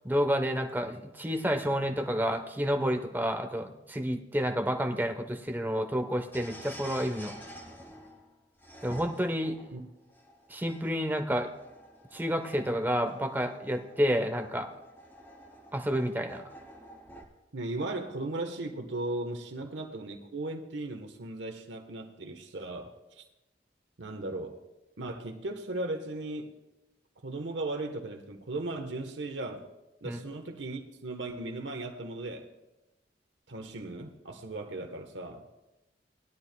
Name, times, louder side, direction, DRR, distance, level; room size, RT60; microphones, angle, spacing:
voice 1, 0.0-7.3 8.8-9.6 10.5-11.5 12.1-14.7 15.7-16.4 30.0-30.2, equal, 10° right, 4 dB, 0.9 m, -30 dB
sound 1, 6.3-17.2, equal, 10° left, 1.8 m, -49 dB
voice 2, 17.5-23.2 24.0-24.6 25.0-26.5 27.2-29.6 30.0-32.5 33.5-35.5, right 2 dB, 80° right, 4 dB, 1.1 m, -37 dB
20.0 x 12.0 x 2.2 m, 0.97 s
head